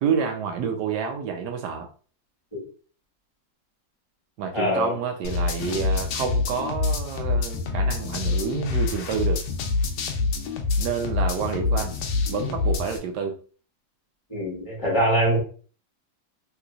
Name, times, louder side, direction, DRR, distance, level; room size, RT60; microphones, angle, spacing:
voice 1, 0.0-1.9 4.4-9.4 10.8-12.0 12.3-13.4, right 6 dB, 75° right, 1.1 m, -28 dB
voice 2, 4.5-4.9 14.3-15.4, equal, 15° left, 1.4 m, -23 dB
sound 1, 5.2-13.0, left 3 dB, 75° left, 1.2 m, -26 dB
3.2 x 3.0 x 2.4 m
omnidirectional pair, 2.0 m